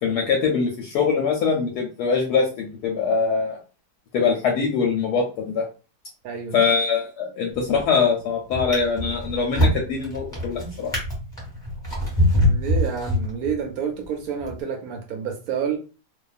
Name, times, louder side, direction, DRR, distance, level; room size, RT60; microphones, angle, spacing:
voice 1, 0.0-3.6 4.1-5.6 6.5-10.9, left 5 dB, 75° left, 1 dB, 1.1 m, -23 dB
voice 2, 6.2-6.6 12.4-15.8, right 7 dB, 70° right, 4 dB, 0.9 m, -29 dB
Drawer open or close, 7.5-8.0 8.5-13.7 14.4-14.6, left 1 dB, 5° left, 1.0 m, -24 dB
2.7 x 2.3 x 2.3 m, 0.33 s
omnidirectional pair, 1.9 m